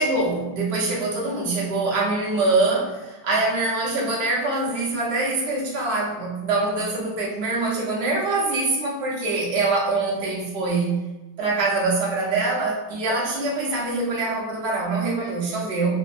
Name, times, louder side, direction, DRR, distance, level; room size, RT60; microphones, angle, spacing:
voice 1, 0.0-11.0 11.4-16.0, right 3 dB, 75° right, -5 dB, 0.5 m, -24 dB
3.3 x 2.0 x 2.4 m, 1.1 s
omnidirectional pair, 2.0 m